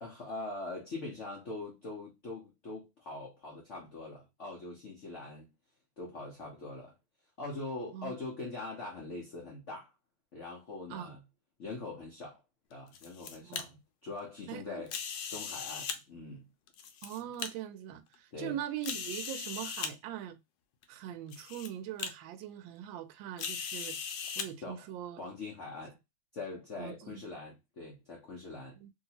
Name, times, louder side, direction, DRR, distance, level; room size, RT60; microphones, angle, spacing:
voice 1, 0.0-5.5 6.0-6.9 7.4-9.9 10.3-11.2 11.6-12.4 12.7-13.8 14.0-14.9 15.3-16.4 18.3-18.6 24.6-24.9 25.2-26.0 26.3-28.8, left 3 dB, 90° left, 0.6 m, -42 dB
sound 1, 12.7-13.6 14.9-16.0 16.7-17.5 18.1-18.2 18.8-19.9 20.8-20.9 21.3-21.7 22.0-22.1 23.4-24.5, left 6 dB, 70° left, 1.1 m, -38 dB
voice 2, 13.4-13.8 14.5-14.8 17.0-20.4 20.9-25.2 26.8-27.2 28.8-28.9, right 11 dB, 75° right, 1.2 m, -42 dB
3.2 x 2.7 x 2.7 m
omnidirectional pair, 2.3 m